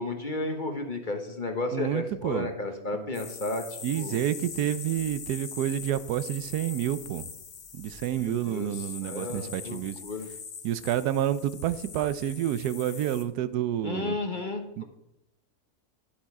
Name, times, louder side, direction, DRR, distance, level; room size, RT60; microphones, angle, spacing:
voice 1, 0.0-3.6 3.9-4.2 8.1-10.3 13.8-14.6, left 2 dB, 35° left, 5 dB, 1.1 m, -33 dB
voice 2, 1.7-2.5 2.9-3.0 3.8-7.3 7.7-10.0 10.6-14.2 14.8-14.9, right 11 dB, 90° right, 14 dB, 1.2 m, -29 dB
sound 1, 3.1-13.2, left 6 dB, 65° left, 1.4 m, -42 dB
11.5 x 7.3 x 4.7 m, 0.82 s
omnidirectional pair, 1.6 m